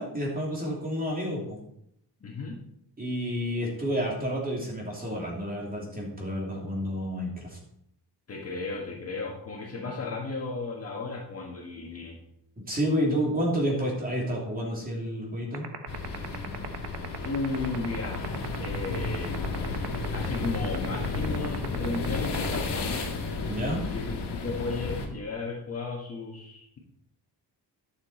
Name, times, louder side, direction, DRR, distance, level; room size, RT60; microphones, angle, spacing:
voice 1, 0.0-1.6 3.0-7.6 12.6-15.7 23.5-23.8, equal, 20° right, -3 dB, 2.9 m, -30 dB
voice 2, 2.2-2.6 8.3-12.2 17.2-18.3 18.6-19.4 19.9-23.1 23.8-26.8, left 3 dB, 35° left, -1 dB, 1.6 m, -34 dB
sound 1, 15.5-23.1, right 11 dB, 70° right, 1.1 m, -35 dB
sound 2, 15.9-25.1, left 4 dB, 85° left, 1.9 m, -32 dB
11.5 x 7.1 x 4.3 m, 0.74 s
wide cardioid pair, 175°, 40 cm